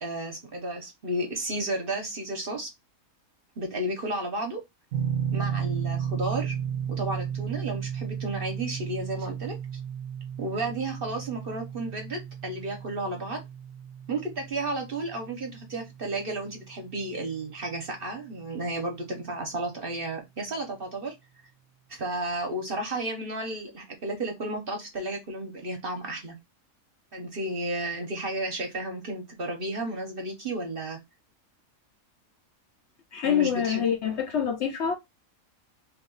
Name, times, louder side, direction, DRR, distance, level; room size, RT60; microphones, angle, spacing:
voice 1, 0.0-2.7 3.6-4.6 5.3-6.6 6.9-9.5 10.4-13.4 14.1-21.1 21.9-26.3 27.1-31.0 33.2-33.8, right 1 dB, 45° right, 1.0 m, -32 dB
sound 1, 4.9-17.8, right 8 dB, 70° right, 0.9 m, -34 dB
voice 2, 33.1-34.9, left 8 dB, 60° left, 0.8 m, -26 dB
2.8 x 2.3 x 3.7 m
omnidirectional pair, 1.5 m